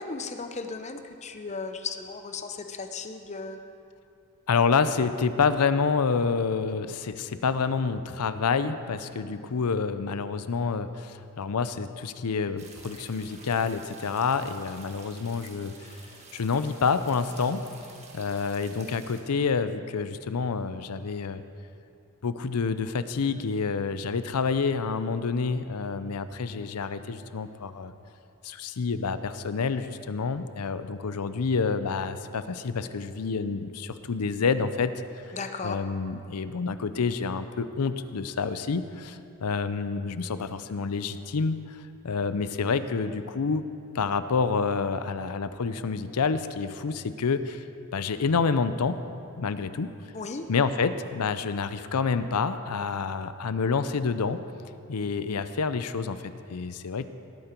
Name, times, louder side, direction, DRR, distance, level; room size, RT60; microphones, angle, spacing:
voice 1, 0.0-3.6 35.3-35.8 50.1-50.5, left 4 dB, 30° left, 7 dB, 0.7 m, -36 dB
voice 2, 4.5-15.9 16.3-17.6 18.1-21.4 22.2-27.9 28.4-34.9 35.3-35.4 35.6-41.8 42.0-43.7 43.9-47.6 47.9-49.0 49.4-49.9 50.5-54.4 54.9-57.1, left 5 dB, 90° left, 12 dB, 0.6 m, -28 dB
sound 1, 12.6-19.2, right 3 dB, 30° right, 1.5 m, -50 dB
18.5 x 9.0 x 4.5 m, 2.6 s
head